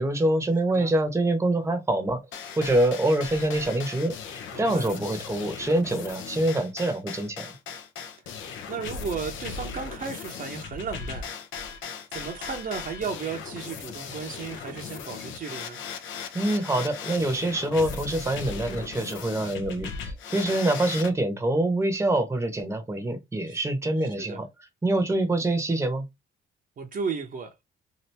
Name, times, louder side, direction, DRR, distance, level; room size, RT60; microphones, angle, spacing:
voice 1, 0.0-2.2 2.6-4.1 4.6-7.4 16.3-24.5 24.8-26.0, right 1 dB, 15° right, 0.8 m, -25 dB
sound 1, 2.3-21.1, left 6 dB, 80° left, 0.7 m, -38 dB
voice 2, 4.5-5.0 8.7-11.3 11.6-11.7 12.1-15.8 23.5-23.6 24.0-24.4 26.8-27.5, right 5 dB, 45° right, 0.7 m, -34 dB
2.8 x 2.6 x 3.3 m
cardioid pair, 90°, 20 cm